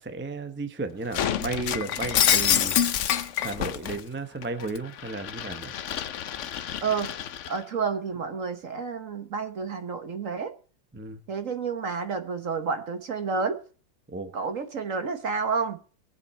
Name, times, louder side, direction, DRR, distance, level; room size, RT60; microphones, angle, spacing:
voice 1, 0.0-2.7 3.4-5.7 10.9-11.2 14.1-14.3, right 3 dB, 10° right, 0.6 m, -34 dB
Shatter, 1.1-4.0 4.4-7.6, left 9 dB, 75° left, 0.7 m, -27 dB
voice 2, 6.8-7.2 7.5-10.5 11.3-13.6 14.3-15.8, right 5 dB, 50° right, 1.2 m, -30 dB
21.5 x 7.8 x 4.3 m
omnidirectional pair, 2.1 m